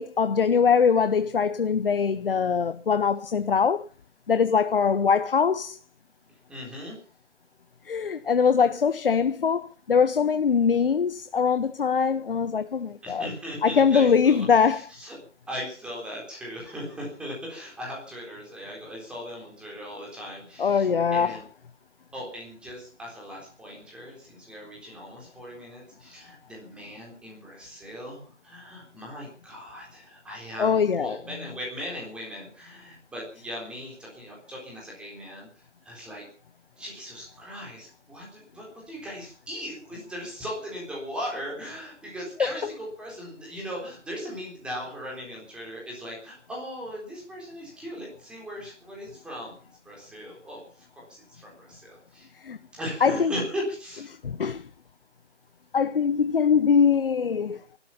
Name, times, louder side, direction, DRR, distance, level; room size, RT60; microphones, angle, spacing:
voice 1, 0.0-3.8 4.3-5.8 7.8-13.3 13.6-14.8 20.6-21.4 30.6-31.2 42.4-42.5 52.4-52.6 53.0-53.3 54.2-54.7 55.7-57.6, left 6 dB, 50° left, 0.8 m, -22 dB
voice 2, 6.5-7.0 13.0-15.2 15.5-21.4 22.1-36.2 36.8-49.6 49.9-52.3 52.7-54.1, equal, 5° right, 3.9 m, -38 dB
19.5 x 12.5 x 5.7 m
hypercardioid pair, 165°, 36 cm